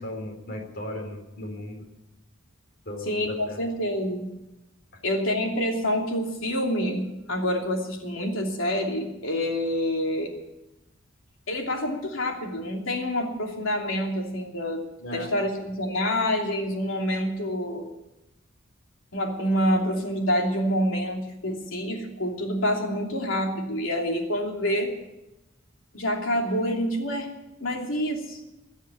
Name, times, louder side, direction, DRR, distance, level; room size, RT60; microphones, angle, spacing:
voice 1, 0.0-1.8 2.9-3.6 4.9-5.0 15.0-15.3, left 1 dB, 55° left, 3 dB, 3.8 m, -36 dB
voice 2, 3.0-4.3 5.0-10.3 11.5-14.8 15.1-17.9 19.1-24.9 25.9-27.3 27.6-28.4, equal, 85° left, 1 dB, 3.0 m, -27 dB
21.0 x 7.4 x 8.7 m, 0.94 s
head